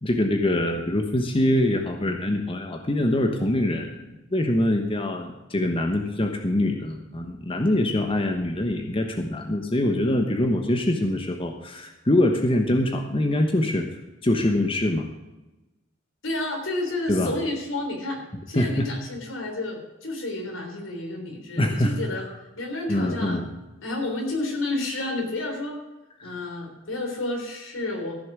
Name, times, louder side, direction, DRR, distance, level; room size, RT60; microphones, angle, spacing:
voice 1, 0.0-13.9 14.2-15.1 17.1-17.3 18.5-18.9 21.6-21.9 22.9-23.5 26.2-26.4, left 1 dB, 25° left, 4 dB, 1.1 m, -24 dB
voice 2, 16.2-22.2 22.6-23.5 23.8-25.8 26.2-28.1, left 2 dB, 85° left, 2 dB, 3.6 m, -30 dB
14.5 x 7.1 x 6.1 m, 1.0 s
head